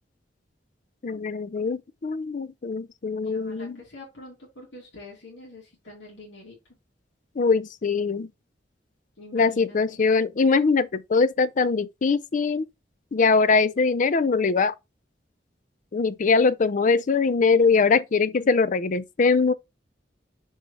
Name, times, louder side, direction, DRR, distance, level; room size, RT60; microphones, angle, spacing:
voice 1, 1.0-3.8 7.4-8.3 9.3-12.6 13.1-14.7 15.9-19.5, left 4 dB, 45° left, 0.5 m, -22 dB
voice 2, 3.2-6.6 9.2-10.0, left 2 dB, 80° left, 2.7 m, -45 dB
6.4 x 4.7 x 3.2 m
head